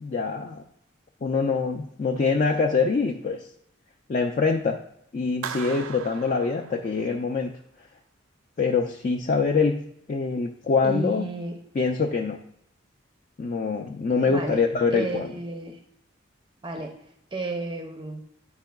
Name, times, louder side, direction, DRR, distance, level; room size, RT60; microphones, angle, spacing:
voice 1, 0.0-0.6 1.2-3.5 4.1-4.8 5.1-7.5 8.6-11.3 11.7-12.4 13.4-15.3, left 4 dB, 40° left, 2 dB, 0.3 m, -24 dB
Clapping, 5.4-7.3, right 7 dB, 85° right, 0.4 m, -38 dB
voice 2, 10.8-11.5 14.2-14.6 14.9-15.8 16.6-16.9 17.3-18.2, right 2 dB, 25° right, 3 dB, 0.5 m, -32 dB
10.0 x 4.5 x 2.3 m, 0.74 s
head